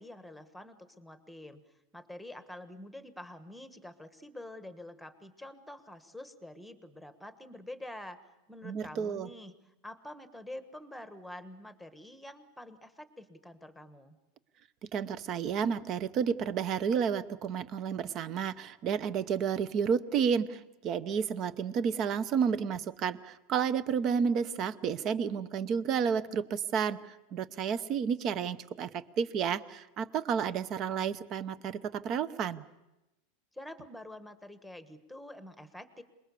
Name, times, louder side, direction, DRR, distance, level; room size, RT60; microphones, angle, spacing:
voice 1, 0.0-1.6 1.9-8.2 8.5-14.2 33.5-36.0, left 1 dB, ahead, 10 dB, 1.3 m, -47 dB
voice 2, 8.6-9.3 14.9-32.6, right 7 dB, 35° right, 15 dB, 0.9 m, -31 dB
27.5 x 20.5 x 6.9 m, 0.98 s
supercardioid pair, 160°, 0 cm